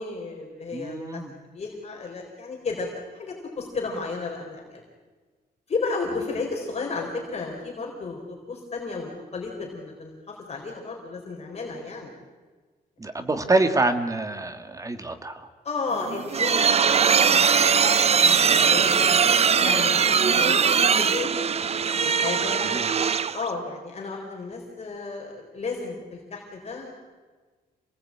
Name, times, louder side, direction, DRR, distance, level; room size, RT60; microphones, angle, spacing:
voice 1, 0.0-1.2 1.5-4.8 5.7-12.1 15.6-19.2 19.6-20.6 21.0-21.3 21.9-22.8 23.3-26.9, left 4 dB, 40° left, 0 dB, 4.1 m, -33 dB
voice 2, 0.7-1.3 13.0-15.5 22.4-22.9, right 2 dB, 20° right, 8 dB, 1.8 m, -26 dB
sound 1, 15.9-23.5, right 6 dB, 40° right, 0.7 m, -20 dB
27.5 x 19.0 x 8.7 m, 1.4 s
wide cardioid pair, 150°, 17 cm